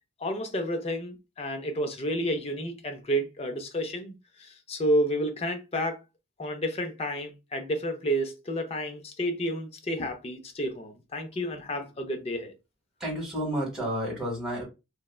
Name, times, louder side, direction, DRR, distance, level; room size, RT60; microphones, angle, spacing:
voice 1, 0.2-6.0 6.4-12.5, equal, 30° left, 0.4 m, -30 dB
voice 2, 13.0-14.6, equal, 5° right, 1.0 m, -31 dB
3.3 x 2.1 x 2.3 m
head